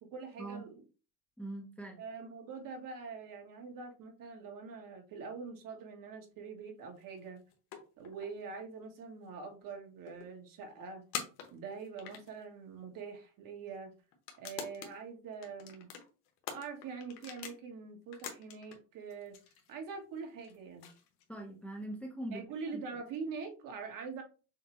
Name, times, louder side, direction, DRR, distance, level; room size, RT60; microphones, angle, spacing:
voice 1, 0.0-0.8 2.0-7.4 8.0-11.0 11.5-13.9 14.4-15.9 16.5-19.4 19.7-20.9 22.3-24.2, right 5 dB, 50° right, 1.3 m, -44 dB
voice 2, 1.4-2.0 21.3-22.4 22.7-22.8, right 1 dB, 5° left, 0.7 m, -42 dB
sound 1, 7.0-8.5 9.0-9.1 9.2-9.3 10.1-10.3 11.1-12.5 13.1-13.2 14.1-15.0 15.3-17.6 18.0-18.8 19.1-21.5, left 8 dB, 90° left, 1.2 m, -45 dB
6.4 x 2.2 x 3.0 m
supercardioid pair, 120°, 44 cm